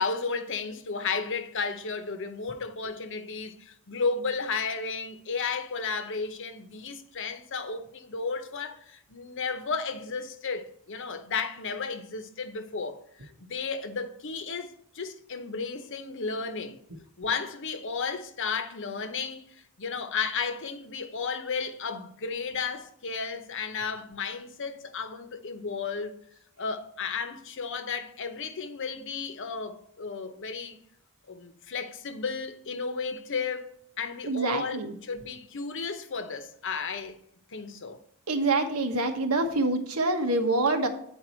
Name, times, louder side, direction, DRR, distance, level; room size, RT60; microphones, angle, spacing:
voice 1, 0.0-16.8 17.2-26.2 26.6-30.8 31.3-33.7 34.0-37.2 37.5-38.0, left 5 dB, 60° left, 0.8 m, -33 dB
voice 2, 34.2-34.9 38.3-40.9, right 2 dB, 90° right, 1.2 m, -26 dB
9.0 x 4.7 x 4.3 m
head